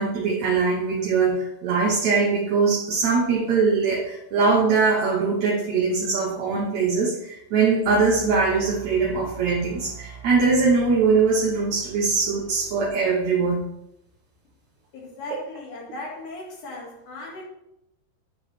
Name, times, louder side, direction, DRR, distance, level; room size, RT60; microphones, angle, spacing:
voice 1, 0.0-13.6, right 4 dB, 65° right, -3 dB, 2.0 m, -22 dB
sound 1, 7.8-12.9, right 5 dB, 85° left, 3.3 m, -42 dB
voice 2, 14.9-17.5, left 2 dB, 60° left, -2 dB, 3.1 m, -37 dB
10.0 x 4.0 x 5.5 m, 0.82 s
omnidirectional pair, 4.3 m